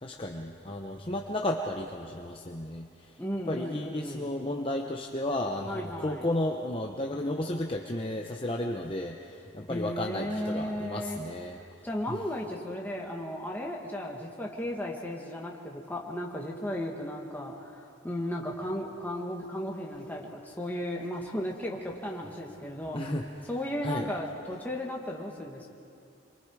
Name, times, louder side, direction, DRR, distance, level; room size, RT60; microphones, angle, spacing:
voice 1, 0.0-3.1 3.5-11.6 12.1-12.2 22.9-23.2 23.8-24.1, left 1 dB, 25° left, 1 dB, 0.9 m, -33 dB
voice 2, 3.2-4.3 5.7-6.3 9.7-11.2 11.8-23.0 23.5-25.7, left 1 dB, 10° left, -1 dB, 1.9 m, -35 dB
27.5 x 23.5 x 4.9 m, 2.6 s
head